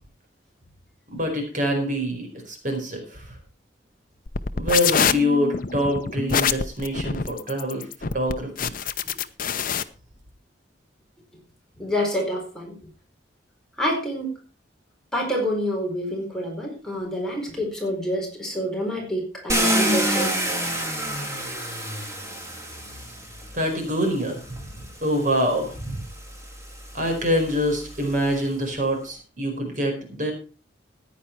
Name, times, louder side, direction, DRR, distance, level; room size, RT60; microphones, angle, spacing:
voice 1, 1.1-3.3 4.6-7.9 8.1-8.7 23.5-26.0 26.9-30.3, equal, 45° right, 4 dB, 4.6 m, -25 dB
sound 1, 4.3-9.8, left 6 dB, 50° left, 0.8 m, -25 dB
voice 2, 11.8-12.8 13.8-14.4 15.1-20.3, equal, 5° left, -1 dB, 4.5 m, -27 dB
Car, 19.5-23.6 24.6-24.7 25.2-28.5, equal, 15° right, 3.5 m, -28 dB
14.5 x 9.9 x 4.5 m, 0.35 s
head